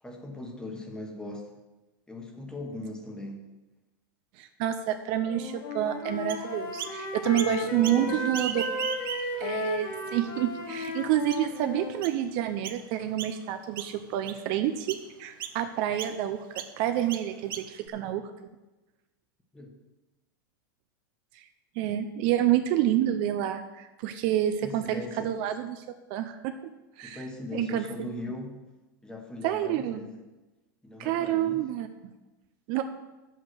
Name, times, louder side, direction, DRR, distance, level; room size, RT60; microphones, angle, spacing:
voice 1, 0.0-1.5 2.1-3.4 7.4-8.2 19.5-19.8 24.6-25.3 27.0-28.6 29.0-30.2 30.8-31.7, left 2 dB, 5° left, 3 dB, 1.3 m, -39 dB
voice 2, 4.4-8.6 9.4-18.3 21.3-21.4 21.8-25.8 26.1-26.5 27.0-27.2 27.5-28.1 29.4-30.0 31.0-31.9 32.7-32.8, right 11 dB, 45° right, 8 dB, 0.7 m, -28 dB
Wind instrument woodwind instrument, 5.2-12.0, left 2 dB, 55° left, 2.5 m, -34 dB
Chirp tweet, 6.3-7.0 7.4-8.0 8.3-9.5 10.0-10.1 10.8-10.9 11.3-11.6 12.0-12.2 12.6-12.8 13.2-13.5 13.8-14.4 14.9-15.1 15.4-15.6 16.0-16.2 16.6-16.7 17.1-17.9, right 9 dB, 80° right, 0.9 m, -37 dB
9.2 x 7.9 x 6.3 m, 1.1 s
supercardioid pair, 145°, 11 cm